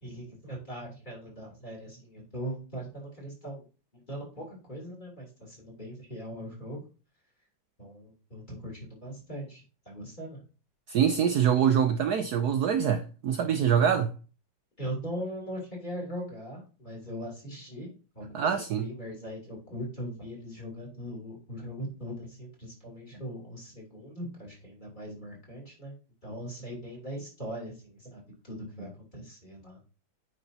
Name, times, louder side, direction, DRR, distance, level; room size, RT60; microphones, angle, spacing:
voice 1, 0.0-3.6 3.9-6.8 7.8-10.4 14.8-25.9 26.2-29.8, equal, 20° left, 3.2 m, -40 dB
voice 2, 10.9-14.1 18.3-18.9, right 8 dB, 80° right, 0.8 m, -24 dB
9.2 x 5.0 x 2.8 m
omnidirectional pair, 2.4 m